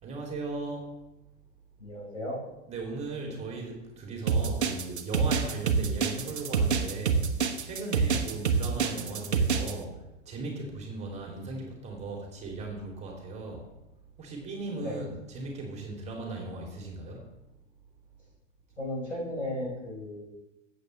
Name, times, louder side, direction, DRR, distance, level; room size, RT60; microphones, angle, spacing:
voice 1, 0.0-0.9 2.7-7.3 7.6-10.0 10.2-13.7 14.2-17.3, right 3 dB, 20° right, 0 dB, 2.9 m, -37 dB
voice 2, 1.8-2.4 14.8-15.0 18.8-20.3, left 1 dB, 90° left, -3 dB, 4.4 m, -35 dB
sound 1, 4.3-9.7, right 6 dB, 65° right, 1.2 m, -26 dB
15.0 x 7.8 x 3.3 m, 0.95 s
figure-of-eight pair, 100°, 36 cm